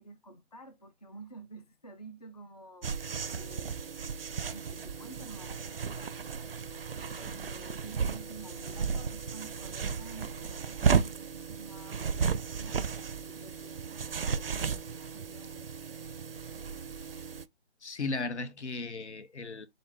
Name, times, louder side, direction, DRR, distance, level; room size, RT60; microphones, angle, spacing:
voice 1, 0.0-4.2 4.5-6.2 7.0-12.8 13.2-15.7, right 2 dB, 40° left, 0.4 m, -50 dB
sound 1, 2.8-17.4, right 6 dB, 60° right, 0.5 m, -34 dB
voice 2, 17.8-19.7, left 3 dB, 85° left, 0.9 m, -36 dB
3.9 x 2.8 x 3.5 m
figure-of-eight pair, 170°, 34 cm